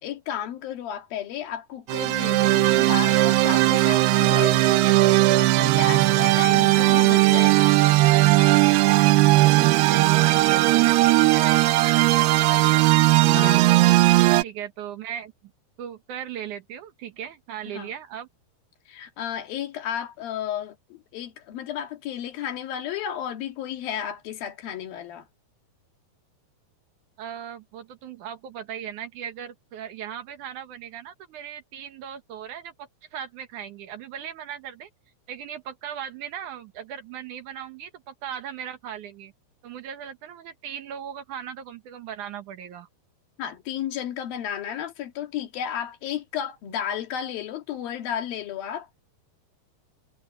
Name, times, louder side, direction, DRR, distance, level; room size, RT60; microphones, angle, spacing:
voice 1, 0.0-7.8 12.6-12.8 13.3-14.0 17.7-17.9 18.9-25.3 43.4-48.9, left 10 dB, 65° left, 3.5 m, -33 dB
sound 1, 1.9-14.4, right 18 dB, 80° right, 2.7 m, -18 dB
voice 2, 9.6-13.8 14.4-15.5 15.8-18.3 27.2-34.9 35.3-39.3 39.6-42.9, right 9 dB, 65° right, 2.2 m, -38 dB
omnidirectional pair, 4.7 m